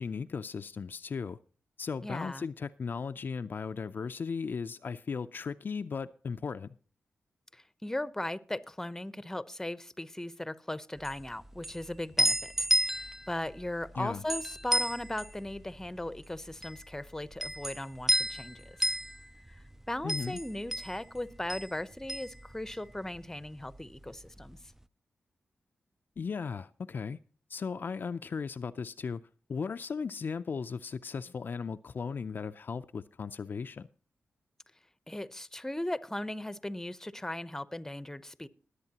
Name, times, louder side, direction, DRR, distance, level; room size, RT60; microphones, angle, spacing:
voice 1, 0.0-1.4 1.8-6.7 14.0-14.2 20.0-20.4 26.2-27.2 27.5-29.2 29.5-33.9, left 5 dB, 60° left, 10 dB, 0.4 m, -36 dB
voice 2, 2.0-2.5 7.5-18.9 19.9-24.6 35.1-38.5, left 1 dB, 10° left, 15 dB, 0.8 m, -38 dB
sound 1, 11.0-23.2 23.5-24.6, right 1 dB, 10° right, 0.4 m, -33 dB
20.5 x 8.2 x 2.9 m, 0.40 s
cardioid pair, 60°, 4 cm